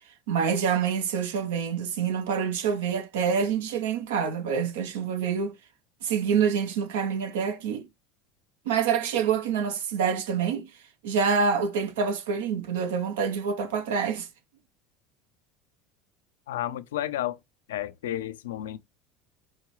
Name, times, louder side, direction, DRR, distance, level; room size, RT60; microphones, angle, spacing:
voice 1, 0.3-5.6 6.0-7.9 8.7-10.7 11.0-14.3, right 6 dB, 75° right, 0.7 m, -26 dB
voice 2, 16.5-17.4 17.7-18.8, left 12 dB, 80° left, 0.4 m, -31 dB
4.8 x 2.8 x 3.1 m
hypercardioid pair, 75°, 0 cm